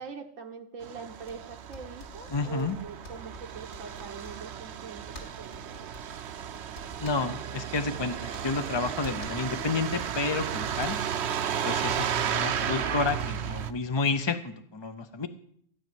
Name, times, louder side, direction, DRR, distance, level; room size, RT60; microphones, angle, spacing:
voice 1, 0.0-5.9, right 5 dB, 85° right, 2 dB, 1.4 m, -43 dB
Truck, 0.8-13.7, right 8 dB, 65° right, 0.9 m, -33 dB
sound 1, 1.2-13.7, left 1 dB, 60° left, 2.8 m, -50 dB
voice 2, 2.3-2.8 7.0-11.0 11.6-15.3, left 4 dB, 35° left, 8 dB, 0.4 m, -30 dB
15.5 x 5.2 x 9.3 m, 0.67 s
omnidirectional pair, 1.3 m